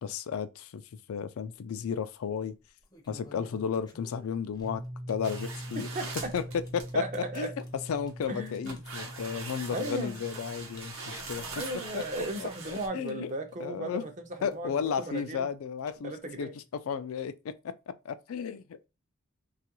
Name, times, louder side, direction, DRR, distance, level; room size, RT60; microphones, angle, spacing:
voice 1, 0.0-0.8 1.1-2.5 3.1-4.8 5.1-5.9 6.3-6.4 6.7-7.0 7.4-7.5 7.9-11.4 11.9-12.5 12.9-13.3 13.6-14.0 14.4-16.1 16.4-17.5 18.0-18.8, left 7 dB, 75° left, 0.4 m, -33 dB
sound 1, 1.5-1.9 2.6-14.0 14.3-16.4, left 2 dB, 20° left, 0.5 m, -56 dB
sound 2, 4.6-15.2, equal, 55° right, 1.0 m, -45 dB
sound 3, 5.2-6.9 7.6-8.1 8.7-12.9, right 3 dB, 75° right, 0.8 m, -42 dB
voice 2, 5.8-6.3 6.9-7.5 8.3-8.8 9.7-10.2 11.6-15.5 16.0-16.5, right 1 dB, 35° right, 0.5 m, -36 dB
3.0 x 2.3 x 2.9 m
head